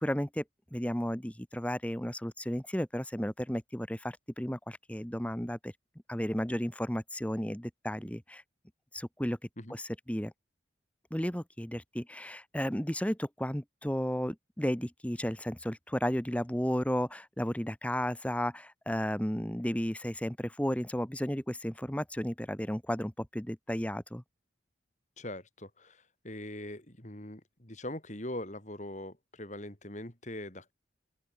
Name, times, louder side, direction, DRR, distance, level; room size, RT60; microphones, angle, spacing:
voice 1, 0.0-0.4 0.7-5.7 6.1-8.4 8.9-9.4 9.7-9.8 10.1-10.3 11.1-24.2, equal, 5° left, 1.3 m, -33 dB
voice 2, 25.2-30.7, left 1 dB, 35° left, 3.8 m, -42 dB
open air
head